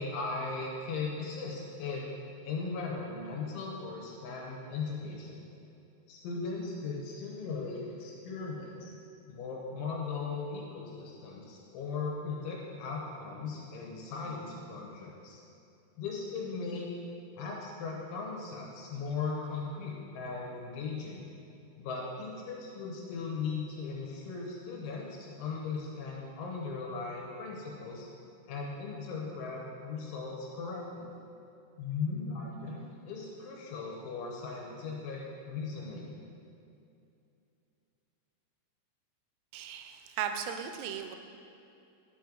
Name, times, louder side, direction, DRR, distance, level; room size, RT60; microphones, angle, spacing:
voice 1, 0.0-2.1 2.4-5.5 6.1-8.9 9.3-15.4 16.0-16.9 17.4-21.2 21.8-28.1 28.5-31.1 31.8-36.2, left 4 dB, 80° left, -2 dB, 3.2 m, -38 dB
voice 2, 39.5-41.2, right 8 dB, 85° right, 6 dB, 3.0 m, -36 dB
11.0 x 5.7 x 3.8 m, 2.6 s
omnidirectional pair, 5.6 m